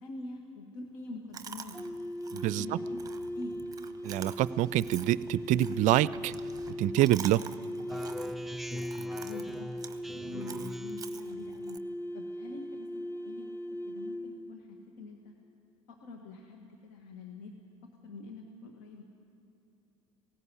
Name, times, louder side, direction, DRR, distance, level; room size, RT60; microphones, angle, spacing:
voice 1, 0.0-2.0 2.3-3.0 3.4-3.6 9.2-9.7 10.0-11.8 12.1-15.3 15.9-17.5 18.0-19.0, left 2 dB, 65° left, 2 dB, 1.7 m, -45 dB
Chewing mastication, 1.3-11.8, right 7 dB, 20° right, 1.1 m, -48 dB
sound 1, 1.7-14.5, equal, 15° left, 1.2 m, -39 dB
voice 2, 2.3-2.7 4.0-6.3 6.8-7.4, right 15 dB, 50° right, 20 dB, 0.4 m, -26 dB
Speech synthesizer, 7.9-11.2, equal, ahead, 0.5 m, -42 dB
18.0 x 16.0 x 9.7 m, 2.8 s
hypercardioid pair, 75°, 16 cm